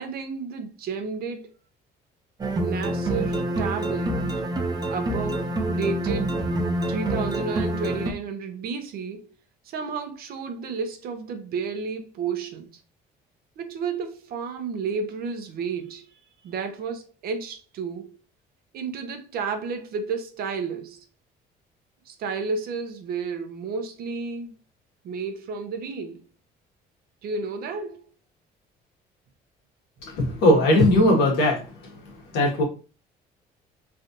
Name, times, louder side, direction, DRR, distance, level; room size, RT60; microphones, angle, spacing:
voice 1, 0.0-1.5 2.6-4.2 4.9-6.5 6.9-9.3 9.6-12.7 13.6-16.1 16.4-18.1 18.7-21.0 22.1-24.5 25.0-26.2 27.2-28.1, right 5 dB, 65° right, 0.6 m, -32 dB
sound 1, 2.4-8.1, right 1 dB, 25° right, 0.6 m, -26 dB
voice 2, 30.0-31.7 32.3-32.6, left 1 dB, 90° left, 1.4 m, -19 dB
3.2 x 2.5 x 2.7 m
cardioid pair, 110°, 17 cm